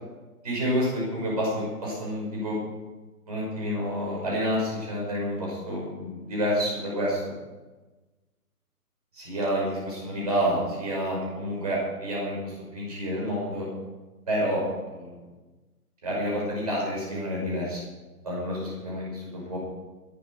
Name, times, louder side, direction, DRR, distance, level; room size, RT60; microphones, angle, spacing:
voice 1, 0.4-2.6 3.3-7.3 9.1-13.7 14.3-15.1 16.0-17.8 18.2-19.6, equal, 25° right, -4 dB, 5.6 m, -29 dB
22.0 x 11.5 x 4.8 m, 1.2 s
hypercardioid pair, 180°, 47 cm